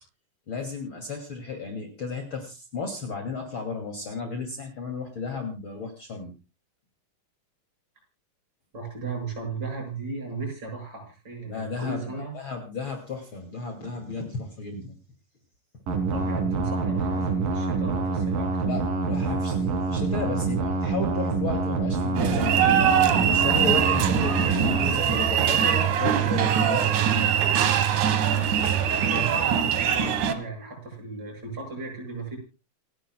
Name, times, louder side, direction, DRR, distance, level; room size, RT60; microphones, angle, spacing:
voice 1, 0.5-6.3 11.5-15.0 18.6-22.8 23.3-27.4, left 4 dB, 40° left, 3 dB, 3.2 m, -34 dB
voice 2, 8.7-12.3 16.1-18.7 29.1-32.4, right 4 dB, 30° right, 1 dB, 8.1 m, -35 dB
sound 1, 15.9-24.9, right 4 dB, 80° right, 4.6 m, -26 dB
sound 2, 22.2-30.3, right 9 dB, 65° right, 2.7 m, -22 dB
28.5 x 11.5 x 2.3 m, 0.30 s
omnidirectional pair, 3.9 m